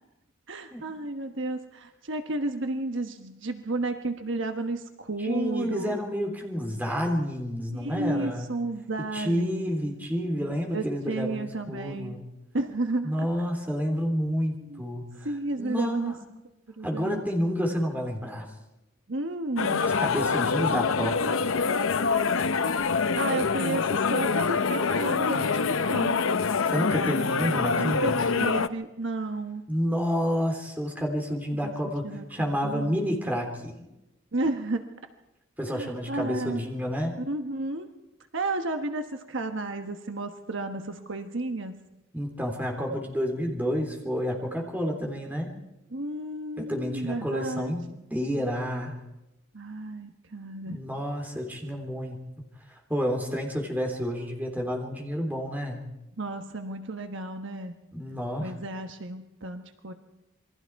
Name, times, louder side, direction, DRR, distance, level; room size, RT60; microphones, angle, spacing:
voice 1, 0.5-6.0 7.7-9.7 10.7-12.1 12.5-13.3 14.7-14.8 15.2-16.2 16.8-17.2 19.1-19.9 23.1-26.3 27.4-29.6 31.5-31.7 32.0-33.1 34.3-34.9 35.7-36.7 37.2-37.9 38.3-41.8 45.9-47.7 49.5-50.8 56.2-57.7 58.4-59.9, right 2 dB, 60° right, 6 dB, 1.3 m, -32 dB
voice 2, 5.2-8.5 9.1-12.2 13.0-15.1 15.6-16.2 16.8-18.5 20.0-21.4 26.7-28.2 29.7-33.8 35.6-37.2 42.1-45.5 46.6-49.0 50.6-52.2 52.7-55.8 57.9-58.5, equal, 10° right, 1 dB, 3.5 m, -29 dB
sound 1, 19.6-28.7, left 5 dB, 75° left, 0.7 m, -25 dB
27.5 x 21.5 x 4.7 m, 0.97 s
head